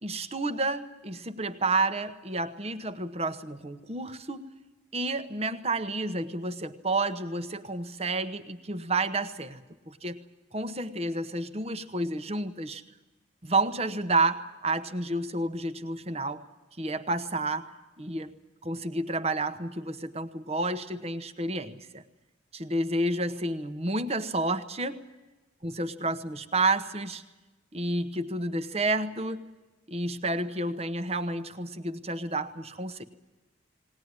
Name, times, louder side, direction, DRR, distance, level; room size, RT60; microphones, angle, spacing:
voice 1, 0.0-4.4 4.9-9.6 9.9-10.2 10.5-12.8 13.4-16.4 16.8-17.7 18.0-18.3 18.6-22.0 22.5-25.0 25.6-27.2 27.7-29.5 29.9-33.0, right 2 dB, 30° right, 10 dB, 1.0 m, -30 dB
19.5 x 19.0 x 9.6 m, 1.1 s
head